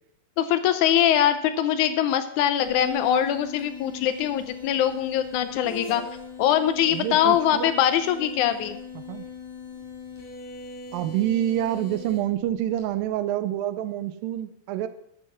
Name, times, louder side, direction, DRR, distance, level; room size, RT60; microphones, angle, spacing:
voice 1, 0.4-6.1 6.4-8.8, left 10 dB, 85° left, 10 dB, 1.8 m, -22 dB
sound 1, 2.6-13.0, left 5 dB, 55° left, 4.0 m, -39 dB
voice 2, 6.9-7.7 9.0-9.2 10.9-14.9, right 12 dB, 80° right, 12 dB, 2.2 m, -27 dB
12.5 x 7.1 x 5.7 m, 0.76 s
omnidirectional pair, 4.2 m